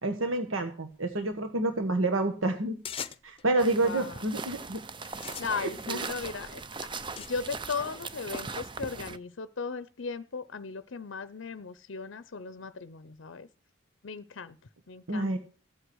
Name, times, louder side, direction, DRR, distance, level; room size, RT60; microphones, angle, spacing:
voice 1, 0.0-2.8 3.2-4.8 5.5-6.0 15.1-15.4, right 2 dB, 80° right, 7 dB, 1.5 m, -29 dB
sound 1, 2.8-3.5 4.2-4.6 5.0-7.3, left 7 dB, 25° left, 0.7 m, -42 dB
voice 2, 3.6-4.2 5.4-6.9 7.3-13.5 14.0-14.6 14.9-15.4, left 4 dB, 65° left, 15 dB, 0.6 m, -37 dB
sound 2, 3.6-9.2, right 4 dB, 25° right, 0.6 m, -39 dB
15.0 x 8.1 x 6.2 m, 0.38 s
head